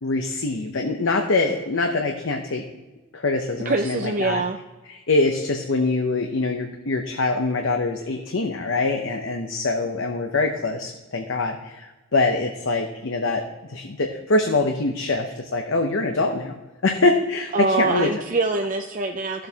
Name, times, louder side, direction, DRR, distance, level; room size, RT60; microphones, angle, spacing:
voice 1, 0.0-2.6 3.1-4.4 4.9-16.5 16.8-18.1, left 3 dB, 60° left, 4 dB, 0.8 m, -24 dB
voice 2, 3.7-4.6 17.5-19.5, right 3 dB, 40° right, 4 dB, 0.5 m, -24 dB
13.5 x 7.6 x 2.9 m, 1.1 s
head